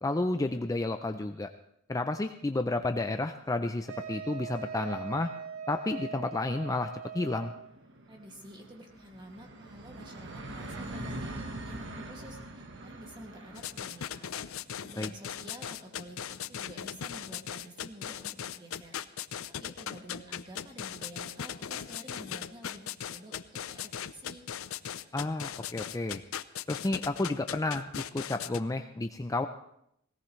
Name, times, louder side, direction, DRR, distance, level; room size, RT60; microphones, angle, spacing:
voice 1, 0.0-1.5 1.9-5.3 5.7-6.9 7.1-7.5 15.0-15.1 25.1-26.2 26.7-29.5, left 2 dB, 15° left, 7 dB, 0.5 m, -31 dB
Wind instrument woodwind instrument, 3.9-7.7, right 7 dB, 80° right, 3.1 m, -41 dB
sound 1, 6.1-17.5, right 1 dB, 60° right, 1.2 m, -45 dB
voice 2, 8.1-14.4 14.8-19.0 19.4-22.8 23.1-24.4, right 1 dB, 25° right, 2 dB, 2.2 m, -49 dB
sound 2, 13.6-28.6, left 9 dB, 75° left, 0.5 m, -38 dB
18.0 x 17.5 x 3.2 m, 0.74 s
head